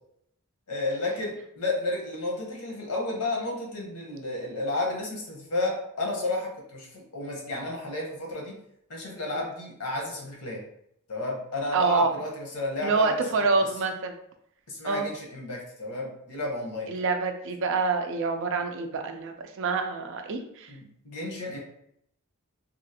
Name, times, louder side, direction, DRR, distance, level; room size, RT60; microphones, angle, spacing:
voice 1, 0.7-8.6 8.9-10.6 11.1-13.5 14.7-16.9 20.7-21.6, left 2 dB, 90° left, 0 dB, 0.9 m, -32 dB
voice 2, 11.7-12.1 12.8-14.2 14.8-15.1 16.9-20.7, right 4 dB, 60° right, 5 dB, 0.4 m, -27 dB
2.9 x 2.4 x 2.7 m, 0.73 s
head